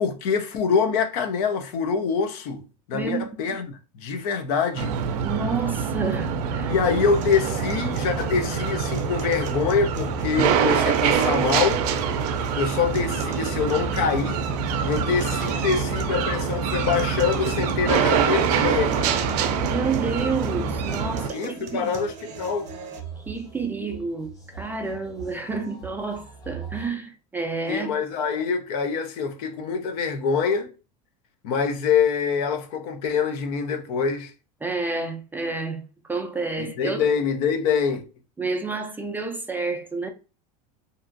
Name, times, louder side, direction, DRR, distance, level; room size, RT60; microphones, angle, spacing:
voice 1, 0.0-2.6 2.9-4.9 6.7-11.8 12.5-14.4 14.8-19.0 21.3-22.7 27.7-30.7 31.4-34.3 36.6-38.0, left 6 dB, 70° left, 0.7 m, -25 dB
voice 2, 2.9-3.6 5.2-6.7 19.7-21.9 23.3-28.0 34.6-37.1 38.4-40.1, right 4 dB, 10° right, 0.3 m, -30 dB
sound 1, 4.8-21.3, right 6 dB, 75° right, 0.5 m, -25 dB
sound 2, 7.0-23.0, right 6 dB, 40° right, 0.7 m, -39 dB
sound 3, 17.6-26.9, right 5 dB, 15° left, 0.9 m, -43 dB
2.7 x 2.5 x 2.5 m
supercardioid pair, 120°, 20 cm